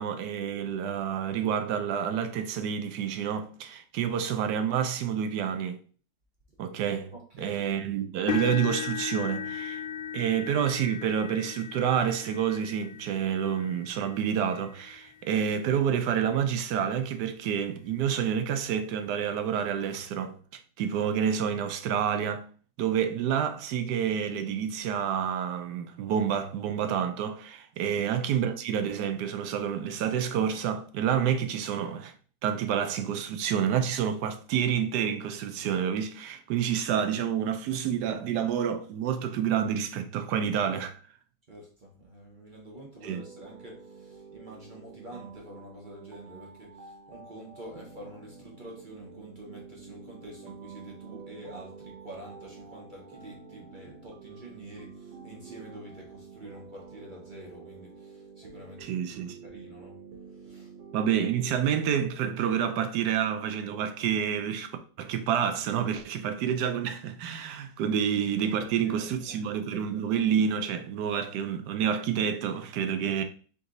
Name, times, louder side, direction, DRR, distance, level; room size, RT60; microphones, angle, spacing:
voice 1, 0.0-5.8 6.6-7.1 7.4-9.8 10.1-20.4 20.8-22.5 22.8-32.1 32.4-40.9 43.0-43.2 58.8-59.4 60.9-64.7 65.0-73.2, right 8 dB, 70° right, 1.1 m, -28 dB
voice 2, 7.1-7.6 27.8-28.0 36.7-36.8 41.5-58.9 59.4-60.0 60.4-60.7 68.4-69.4, right 1 dB, 45° right, 0.6 m, -47 dB
sound 1, 8.3-16.3 16.9-17.2 17.6-17.7 19.1-19.2, left 8 dB, 75° left, 1.3 m, -38 dB
sound 2, 43.1-61.6, right 5 dB, 90° right, 1.5 m, -48 dB
4.0 x 2.7 x 3.8 m
omnidirectional pair, 2.0 m